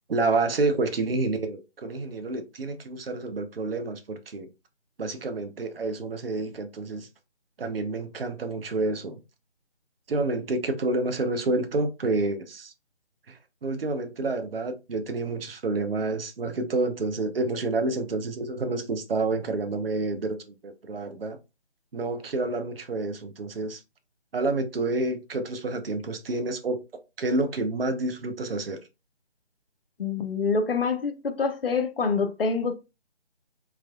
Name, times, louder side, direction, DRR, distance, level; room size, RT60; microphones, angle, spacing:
voice 1, 0.1-4.5 5.0-7.1 7.6-9.2 10.1-12.7 13.3-21.4 21.9-23.8 24.3-26.8 27.2-28.8, right 2 dB, 55° right, 0.6 m, -29 dB
voice 2, 30.0-32.7, left 4 dB, 55° left, 0.6 m, -26 dB
3.4 x 3.1 x 2.3 m
figure-of-eight pair, 160°, 35 cm